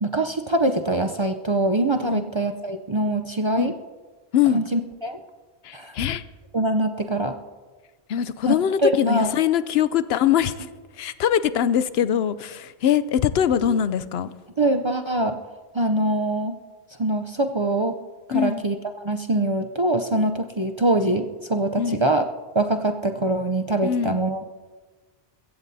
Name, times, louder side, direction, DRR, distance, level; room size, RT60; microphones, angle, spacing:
voice 1, 0.0-3.7 4.5-5.2 5.7-5.9 6.5-7.4 8.4-8.5 8.8-9.3 14.6-15.4 15.7-16.6 17.0-17.9 18.3-22.3 22.5-24.4, right 1 dB, 35° right, 5 dB, 0.5 m, -23 dB
voice 2, 4.3-4.6 5.6-6.2 8.1-14.3 18.3-18.6 21.8-22.0 23.8-24.2, left 9 dB, 75° left, 14 dB, 0.8 m, -22 dB
22.5 x 16.0 x 2.7 m, 1.4 s
omnidirectional pair, 1.1 m